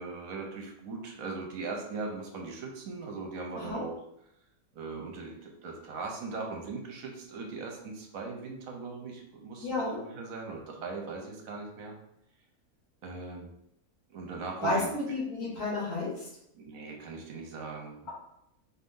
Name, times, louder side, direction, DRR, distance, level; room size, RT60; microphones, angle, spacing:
voice 1, 0.0-3.9 4.7-9.7 10.0-12.0 13.0-13.5 14.1-14.9 16.5-18.1, right 4 dB, 70° right, 2 dB, 1.1 m, -39 dB
voice 2, 9.6-10.0 14.6-16.3, left 2 dB, 80° left, -6 dB, 2.3 m, -31 dB
4.4 x 2.6 x 3.6 m, 0.78 s
omnidirectional pair, 1.6 m